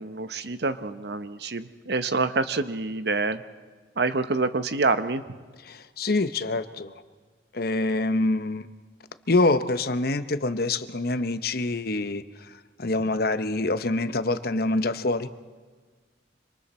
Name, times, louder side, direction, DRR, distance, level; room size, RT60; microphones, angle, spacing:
voice 1, 0.0-3.4 4.0-5.2, right 3 dB, 65° right, 11 dB, 1.0 m, -27 dB
voice 2, 5.6-6.9 7.5-8.7 9.3-12.5 12.8-15.3, left 2 dB, 60° left, 11 dB, 0.9 m, -25 dB
26.5 x 26.0 x 4.4 m, 1.5 s
head